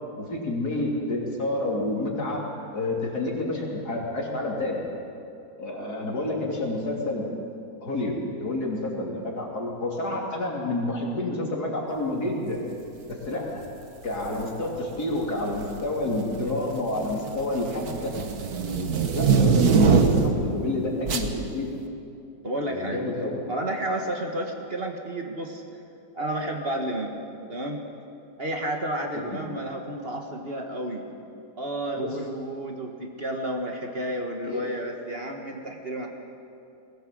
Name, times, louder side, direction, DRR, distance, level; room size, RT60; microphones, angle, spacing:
voice 1, 0.2-2.5 2.7-4.8 5.6-7.3 7.8-12.6 13.3-13.6 14.0-18.1 19.1-21.7 22.6-23.4 29.1-29.4 32.0-32.1 34.4-34.7, left 2 dB, 75° left, -2 dB, 3.8 m, -29 dB
sound 1, 14.1-14.4 15.4-15.8 16.2-20.5 21.1-21.3, right 5 dB, 70° right, 1.8 m, -22 dB
voice 2, 22.4-23.0 23.5-25.6 26.1-27.2 27.5-27.8 28.4-31.1 31.6-36.1, right 1 dB, 40° right, 2 dB, 1.8 m, -31 dB
20.5 x 17.0 x 7.7 m, 2.6 s
omnidirectional pair, 1.7 m